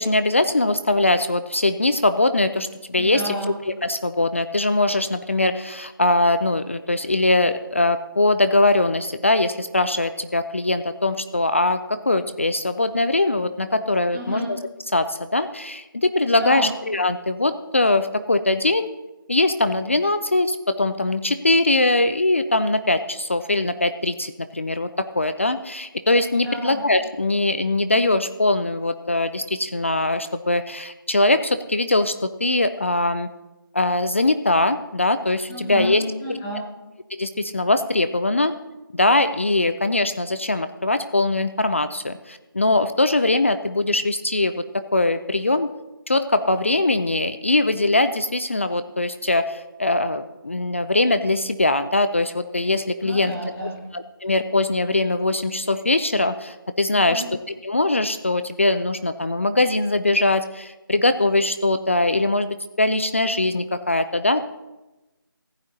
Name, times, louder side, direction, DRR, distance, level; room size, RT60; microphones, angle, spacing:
voice 1, 0.0-3.3 3.8-14.4 14.9-18.9 19.3-33.3 33.7-36.0 37.1-38.5 38.9-45.7 46.1-53.3 53.9-57.2 57.6-64.4, left 2 dB, 35° left, 11 dB, 0.4 m, -21 dB
voice 2, 3.0-3.6 14.1-14.5 16.4-16.7 26.3-26.8 35.5-36.6 53.0-53.8 56.9-57.3, equal, 10° left, -6 dB, 1.4 m, -30 dB
15.5 x 11.5 x 2.8 m, 1.0 s
figure-of-eight pair, 170°, 12 cm